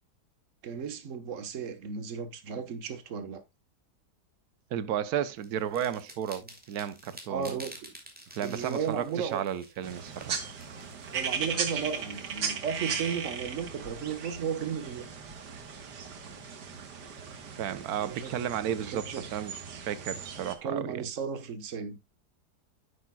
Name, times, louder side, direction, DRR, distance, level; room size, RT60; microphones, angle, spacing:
voice 1, 0.6-3.4 7.3-7.9 8.4-9.4 11.1-15.1 18.0-19.3 20.6-22.0, right 6 dB, 50° right, 1.6 m, -35 dB
voice 2, 4.7-7.6 8.3-10.4 17.6-21.1, right 9 dB, 70° right, 1.3 m, -33 dB
sound 1, 5.4-12.3, equal, 5° right, 2.6 m, -50 dB
sound 2, 9.8-20.5, right 6 dB, 85° right, 2.1 m, -37 dB
10.0 x 9.1 x 2.3 m
omnidirectional pair, 1.8 m